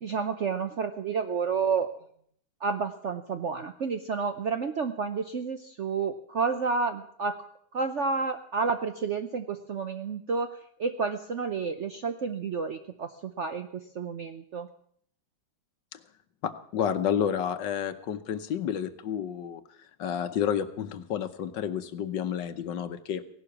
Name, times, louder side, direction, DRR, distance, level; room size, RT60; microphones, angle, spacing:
voice 1, 0.0-1.9 2.6-7.4 7.7-14.7, right 5 dB, 60° right, 8 dB, 0.8 m, -30 dB
voice 2, 16.4-19.6 20.0-23.2, left 9 dB, 70° left, 11 dB, 1.5 m, -30 dB
17.0 x 11.5 x 7.2 m, 0.64 s
omnidirectional pair, 2.1 m